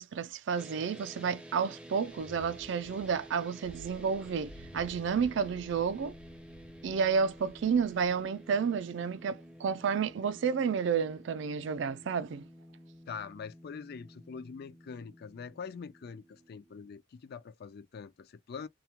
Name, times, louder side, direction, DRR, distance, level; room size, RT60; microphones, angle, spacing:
voice 1, 0.0-6.1 6.8-12.5, right 6 dB, 65° right, 0.4 m, -31 dB
sound 1, 0.6-16.9, equal, 5° right, 0.5 m, -51 dB
sound 2, 2.1-8.3, equal, 85° left, 0.8 m, -53 dB
voice 2, 13.1-18.7, left 6 dB, 50° left, 0.4 m, -44 dB
2.3 x 2.1 x 2.8 m
head